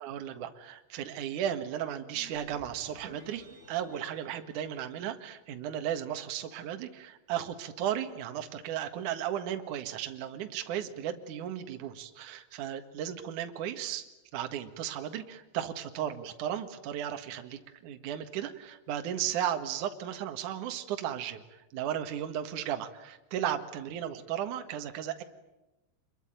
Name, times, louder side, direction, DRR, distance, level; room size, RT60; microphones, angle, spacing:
voice 1, 0.0-14.1 14.3-25.2, right 10 dB, 60° right, 7 dB, 2.4 m, -35 dB
sound 1, 2.1-5.4, right 1 dB, 15° right, 6.5 m, -54 dB
27.0 x 22.0 x 9.1 m, 0.98 s
omnidirectional pair, 5.5 m